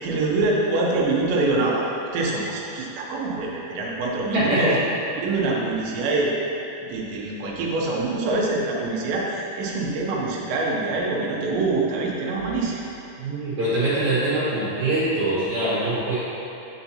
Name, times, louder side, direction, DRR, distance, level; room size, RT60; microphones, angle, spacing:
voice 1, 0.0-4.7 5.2-6.3 6.9-12.9, right 3 dB, 75° right, -3 dB, 3.1 m, -25 dB
voice 2, 4.3-4.8 13.2-16.2, right 1 dB, 55° right, -11 dB, 2.4 m, -23 dB
9.4 x 7.0 x 2.8 m, 2.8 s
omnidirectional pair, 5.4 m